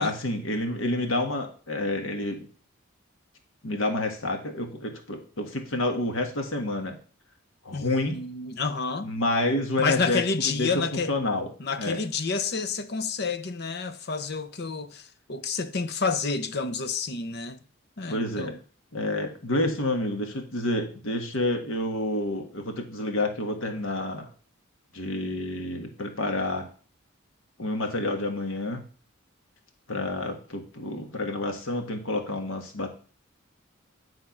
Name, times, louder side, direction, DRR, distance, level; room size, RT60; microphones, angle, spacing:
voice 1, 0.0-2.5 3.6-7.0 7.6-8.3 9.0-10.7 11.1-11.5 11.8-12.0 18.1-18.5 18.9-24.3 24.9-26.7 27.6-28.8 29.9-32.9, left 2 dB, 75° left, 1.5 m, -29 dB
voice 2, 7.7-9.1 9.8-11.1 11.6-17.6 18.0-18.6, left 4 dB, 50° left, 0.7 m, -29 dB
11.0 x 3.6 x 5.8 m
head